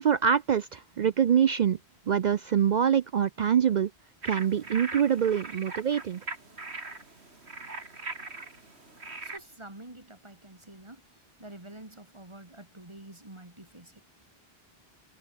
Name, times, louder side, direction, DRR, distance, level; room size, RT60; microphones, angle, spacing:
voice 1, 0.0-1.8 2.1-3.9 4.2-6.2, right 8 dB, 55° right, 0.6 m, -25 dB
sound 1, 4.2-9.4, right 3 dB, 90° right, 3.3 m, -41 dB
voice 2, 9.2-14.3, right 1 dB, 25° right, 3.2 m, -48 dB
omnidirectional pair, 1.1 m